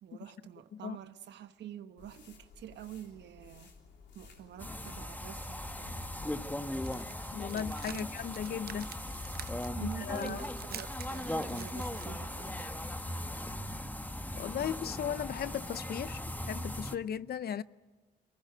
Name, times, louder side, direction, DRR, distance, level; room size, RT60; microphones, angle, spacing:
voice 1, 0.0-3.7 4.1-6.0 7.9-8.1 9.8-13.1, right 11 dB, 80° right, 1.2 m, -47 dB
sound 1, 2.0-11.5, left 5 dB, 80° left, 3.4 m, -55 dB
sound 2, 4.6-17.0, left 1 dB, 10° left, 1.3 m, -39 dB
sound 3, 6.7-12.1, right 9 dB, 60° right, 0.8 m, -49 dB
voice 2, 7.3-8.9 9.8-10.4 14.4-16.2 16.5-17.6, left 8 dB, 65° left, 0.7 m, -36 dB
23.5 x 19.0 x 9.5 m
cardioid pair, 65°, 18 cm